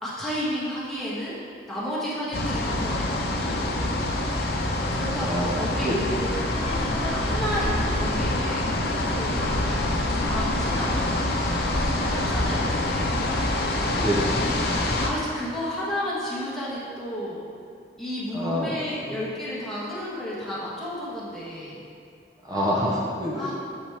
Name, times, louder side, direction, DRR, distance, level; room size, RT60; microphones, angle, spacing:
voice 1, 0.0-1.3 1.7-3.6 4.9-9.6 10.1-13.1 14.9-17.4 18.0-21.8 23.3-23.5, equal, ahead, -10 dB, 1.5 m, -32 dB
sound 1, 2.3-15.1, left 1 dB, 60° left, 0.7 m, -25 dB
voice 2, 5.2-6.0 14.0-14.5 18.3-18.7 19.0-19.2 22.4-23.5, equal, 20° right, -5 dB, 0.6 m, -27 dB
7.1 x 5.6 x 3.4 m, 2.5 s
head